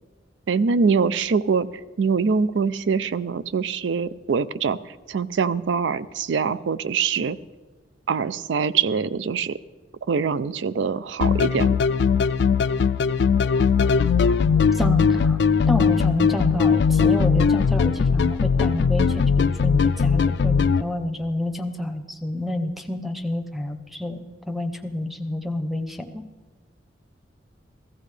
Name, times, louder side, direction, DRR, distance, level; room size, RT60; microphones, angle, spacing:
voice 1, 0.5-1.7 2.0-4.8 5.1-7.4 8.1-9.6 10.1-11.8, right 5 dB, 80° right, 16 dB, 0.4 m, -23 dB
sound 1, 11.2-20.8, left 5 dB, 65° left, 0.4 m, -19 dB
voice 2, 14.7-15.4 15.7-26.3, left 1 dB, ahead, 6 dB, 0.7 m, -29 dB
15.0 x 15.0 x 3.3 m, 1.3 s
head